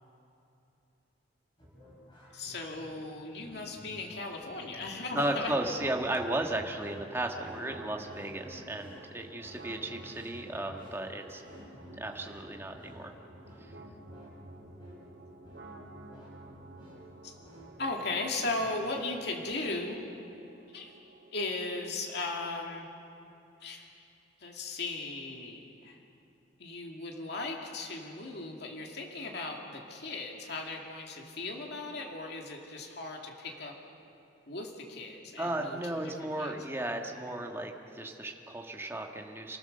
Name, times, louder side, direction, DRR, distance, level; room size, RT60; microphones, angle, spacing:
sound 1, 1.6-19.7, equal, 25° left, 7.2 m, -55 dB
voice 1, 2.3-5.5 17.2-17.4 17.8-20.0 20.7-20.9 21.3-22.9 23.6-23.9 24.4-26.0 26.6-33.7 34.5-35.8 36.2-36.5, left 2 dB, 60° left, 1 dB, 2.4 m, -37 dB
voice 2, 5.1-11.4 11.9-13.1 13.6-13.7 35.4-39.6, right 1 dB, 15° right, 2 dB, 1.6 m, -35 dB
sound 2, 5.4-21.4, right 1 dB, 75° right, 2.6 m, -51 dB
28.5 x 15.5 x 6.7 m, 2.8 s
head